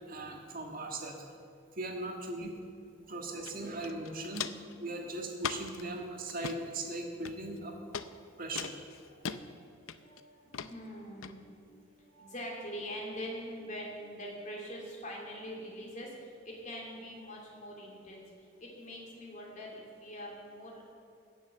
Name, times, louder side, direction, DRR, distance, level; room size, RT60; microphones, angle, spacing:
voice 1, 0.1-1.2 1.7-2.6 3.1-4.5 4.8-7.7 8.4-8.7 9.0-9.1, right 2 dB, 45° right, 2 dB, 1.7 m, -39 dB
voice 2, 3.0-3.9 9.8-20.9, equal, 40° left, -2 dB, 2.9 m, -44 dB
Walk footsteps, 3.4-3.5 3.8-4.7 5.4-5.8 6.3-6.6 7.2-7.6 7.9-8.1 8.6-9.4 9.9-10.2 10.5-10.7 11.2-11.3, left 7 dB, 80° left, 0.6 m, -38 dB
16.5 x 7.1 x 6.7 m, 2.4 s
head